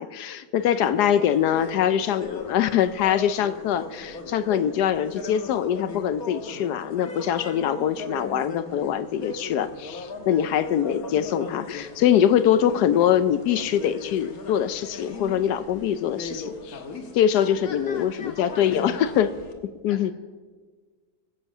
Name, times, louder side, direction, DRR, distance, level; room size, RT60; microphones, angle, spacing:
voice 1, 0.0-16.8 17.1-19.3 19.6-20.1, left 9 dB, 75° left, 13 dB, 1.1 m, -23 dB
sound 1, 0.6-19.5, left 3 dB, 60° left, 1.7 m, -39 dB
voice 2, 1.4-2.6 17.3-19.2 19.9-20.1, left 4 dB, 35° left, 4 dB, 1.7 m, -44 dB
22.5 x 7.9 x 6.1 m, 1.5 s
omnidirectional pair, 1.8 m